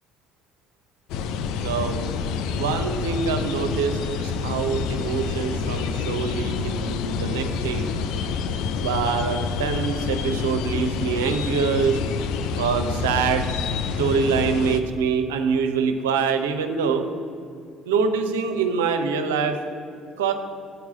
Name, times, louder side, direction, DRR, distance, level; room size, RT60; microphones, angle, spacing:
sound 1, 1.1-14.8, left 5 dB, 60° left, 0.5 m, -28 dB
voice 1, 1.6-2.0 2.5-7.9 8.8-12.0 12.5-13.5 14.0-17.1 17.9-19.6 20.2-20.3, right 6 dB, 70° right, 7 dB, 0.7 m, -24 dB
8.1 x 4.7 x 7.4 m, 2.4 s
figure-of-eight pair, 55°, 0 cm